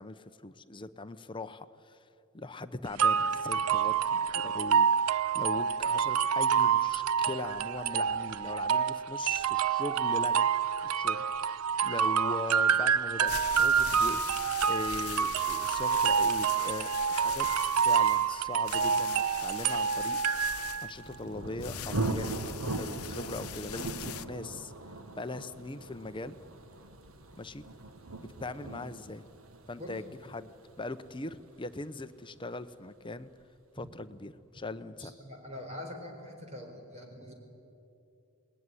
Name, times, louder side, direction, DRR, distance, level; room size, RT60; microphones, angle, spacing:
voice 1, 0.0-2.0 2.3-10.5 10.8-20.2 20.8-22.3 22.8-24.7 25.1-26.4 27.4-27.6 28.2-29.3 29.7-30.5 30.8-33.3 33.7-35.1, left 2 dB, 25° left, 11 dB, 0.8 m, -40 dB
sound 1, 3.0-20.9, right 7 dB, 90° right, 0.5 m, -27 dB
sound 2, 13.0-24.3, left 11 dB, 80° left, 0.8 m, -42 dB
Thunder, 20.6-32.1, right 2 dB, 70° right, 1.6 m, -39 dB
voice 2, 35.0-37.3, left 1 dB, 30° right, 2 dB, 4.4 m, -44 dB
27.5 x 20.0 x 9.8 m, 2.7 s
head